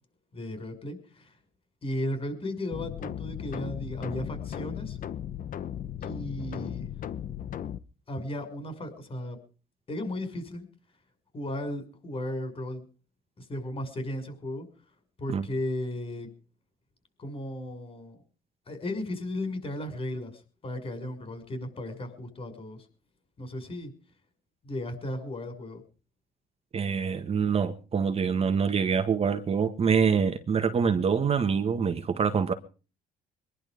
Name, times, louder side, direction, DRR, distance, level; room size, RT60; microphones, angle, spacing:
voice 1, 0.3-1.4 1.8-5.0 6.0-6.9 8.1-9.4 9.9-10.6 11.3-12.8 13.4-14.7 15.2-16.3 17.2-18.2 18.7-22.9 23.4-23.9 24.6-25.8, left 1 dB, 35° left, 6.2 m, -35 dB
sound 1, 2.7-7.8, left 10 dB, 55° left, 1.1 m, -36 dB
voice 2, 26.7-32.5, right 6 dB, 35° right, 1.7 m, -25 dB
23.0 x 11.5 x 5.2 m
cardioid pair, 110°, 17 cm